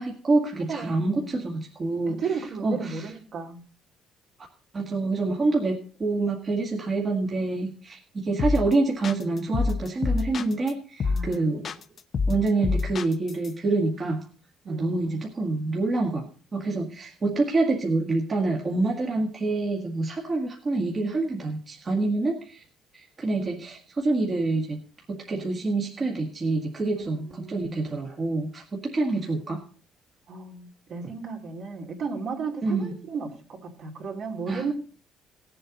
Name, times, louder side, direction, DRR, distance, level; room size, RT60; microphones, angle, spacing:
voice 1, 0.0-2.2 2.6-3.1 4.7-11.7 12.3-14.2 14.7-16.3 16.5-22.6 22.9-24.8 25.1-29.7 31.0-31.1 32.6-33.0 34.5-34.7, right 3 dB, 25° right, -1 dB, 1.7 m, -27 dB
voice 2, 0.7-1.3 2.1-3.6 11.0-11.5 14.6-15.0 26.9-27.8 30.3-34.7, right 5 dB, 50° right, 1 dB, 2.7 m, -34 dB
sound 1, 8.4-8.7 9.0-10.7 11.0-11.3 11.6-13.5, left 4 dB, 40° left, 0.8 m, -26 dB
18.0 x 7.7 x 4.0 m, 0.39 s
cardioid pair, 145°, 0 cm